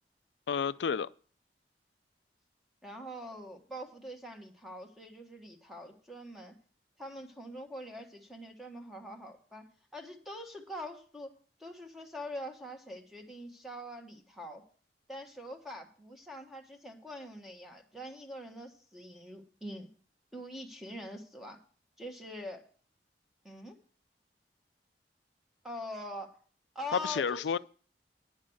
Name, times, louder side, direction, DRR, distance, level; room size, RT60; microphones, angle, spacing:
voice 1, 0.5-1.1 26.9-27.6, left 6 dB, 85° left, 0.4 m, -30 dB
voice 2, 2.8-6.5 7.0-9.6 9.9-11.3 11.6-14.6 15.1-19.9 20.3-21.6 22.0-22.6 23.4-23.8 25.6-26.4 26.7-27.4, equal, ahead, 1.4 m, -44 dB
10.0 x 6.3 x 7.8 m
head